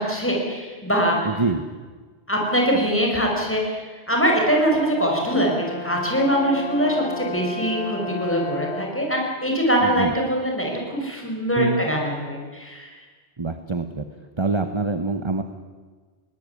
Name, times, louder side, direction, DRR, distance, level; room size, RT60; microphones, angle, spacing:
voice 1, 0.0-1.3 2.3-3.7 4.1-12.9, equal, 10° left, 0 dB, 5.9 m, -23 dB
voice 2, 1.2-1.6 9.8-10.1 11.6-11.8 13.4-14.1 14.4-15.4, right 3 dB, 25° right, 8 dB, 1.1 m, -25 dB
Brass instrument, 4.7-9.1, left 3 dB, 75° left, 2.1 m, -33 dB
21.0 x 18.0 x 9.6 m, 1.4 s
omnidirectional pair, 1.1 m